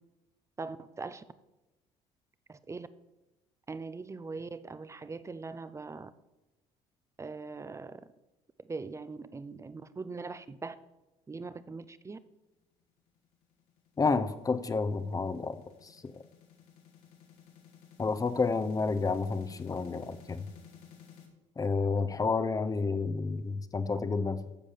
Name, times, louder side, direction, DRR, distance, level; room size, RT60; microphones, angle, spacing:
voice 1, 0.6-1.2 2.5-2.9 3.7-6.1 7.2-8.0 8.6-10.8 11.3-12.2, right 4 dB, 20° right, 14 dB, 0.8 m, -41 dB
sound 1, 13.2-21.3, left 8 dB, 85° left, 2.8 m, -55 dB
voice 2, 14.0-16.2 18.0-20.5 21.6-24.6, left 4 dB, 25° left, 11 dB, 1.0 m, -30 dB
14.0 x 5.1 x 7.4 m, 1.0 s
supercardioid pair, 80°, 14 cm